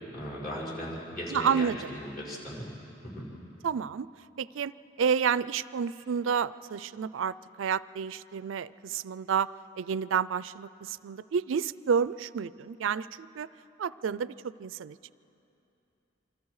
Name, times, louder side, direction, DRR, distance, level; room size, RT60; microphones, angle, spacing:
voice 1, 0.1-2.7 3.0-3.3, equal, 45° left, -6 dB, 5.7 m, -37 dB
voice 2, 1.3-1.9 3.6-4.1 4.4-4.7 5.0-9.5 9.8-13.5 13.8-15.1, right 7 dB, 80° right, 18 dB, 0.4 m, -30 dB
28.0 x 24.5 x 4.8 m, 2.9 s
head